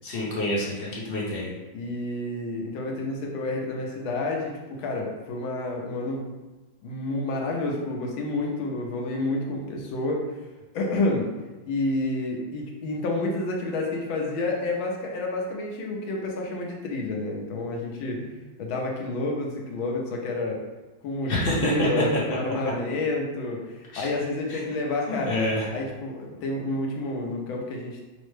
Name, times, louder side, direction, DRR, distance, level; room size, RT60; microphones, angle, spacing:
voice 1, 0.0-1.5 18.1-18.4 21.3-21.9 23.9-24.1 24.5-24.6 25.1-25.7, left 1 dB, 50° left, -5 dB, 0.6 m, -28 dB
voice 2, 1.7-6.2 6.8-10.4 10.7-11.3 11.7-18.2 18.6-20.6 21.0-25.4 25.7-28.0, left 2 dB, 80° left, 0 dB, 1.5 m, -29 dB
5.7 x 2.1 x 3.2 m, 1.1 s
omnidirectional pair, 2.2 m